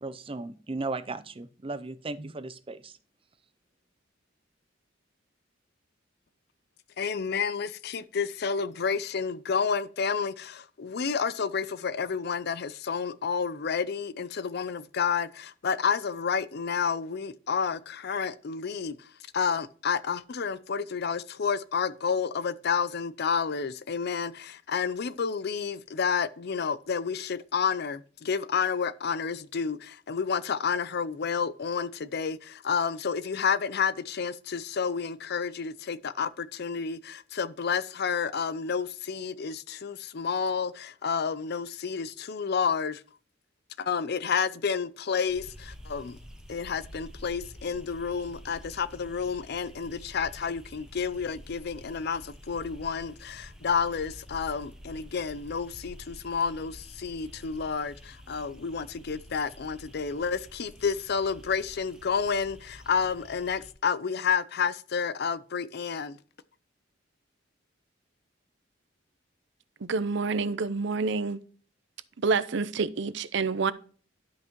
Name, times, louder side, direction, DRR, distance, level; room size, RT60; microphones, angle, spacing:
voice 1, 0.0-3.0, right 3 dB, 30° right, 0.6 m, -36 dB
voice 2, 7.0-43.0 43.8-46.2 46.5-66.2, left 6 dB, 60° left, 0.5 m, -30 dB
sound 1, 45.3-63.7, equal, 5° right, 1.0 m, -49 dB
voice 3, 69.8-71.4 72.2-73.7, right 4 dB, 70° right, 0.6 m, -28 dB
12.0 x 5.6 x 3.0 m
head